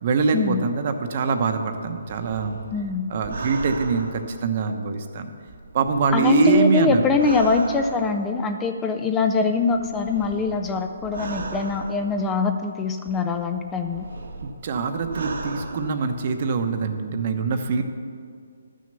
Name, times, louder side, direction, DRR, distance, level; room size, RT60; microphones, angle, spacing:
voice 1, 0.0-2.6 3.1-5.3 5.7-7.0 14.4-17.8, right 4 dB, 45° right, 7 dB, 1.0 m, -23 dB
sound 1, 1.7-5.0 5.5-8.4 9.3-12.5 13.1-16.5 16.7-16.8, right 3 dB, 70° right, 1.3 m, -37 dB
voice 2, 2.7-3.1 6.1-14.1, left 4 dB, 15° left, 5 dB, 0.5 m, -23 dB
12.0 x 6.4 x 6.8 m, 2.2 s
hypercardioid pair, 155°, 0 cm